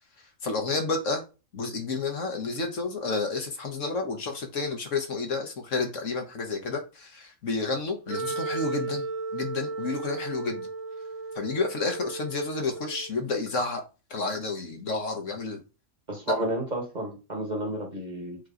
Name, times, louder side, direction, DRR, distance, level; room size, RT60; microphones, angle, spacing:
voice 1, 0.4-1.2 1.5-9.1 9.3-10.7 11.3-13.8 14.1-15.6 16.3-16.4, left 3 dB, 65° left, 1.6 m, -30 dB
Wind instrument woodwind instrument, 8.1-13.2, right 3 dB, 75° right, 1.2 m, -35 dB
voice 2, 16.1-18.4, right 1 dB, 30° right, 1.4 m, -31 dB
8.4 x 3.1 x 3.9 m
omnidirectional pair, 1.4 m